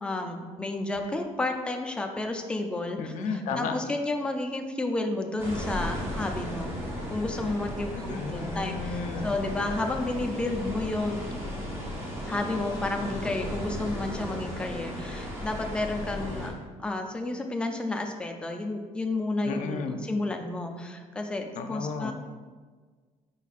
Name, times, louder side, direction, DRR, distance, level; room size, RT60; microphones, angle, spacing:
voice 1, 0.0-6.7 7.1-11.3 12.3-16.5 16.8-22.1, left 2 dB, 5° left, 4 dB, 0.3 m, -31 dB
voice 2, 3.0-3.8 7.9-9.3 19.4-20.0 21.6-22.1, left 4 dB, 65° left, 6 dB, 0.5 m, -33 dB
sound 1, 5.4-16.5, equal, 20° right, 0.9 m, -35 dB
5.1 x 4.0 x 2.4 m, 1.5 s
cardioid pair, 160°, 13 cm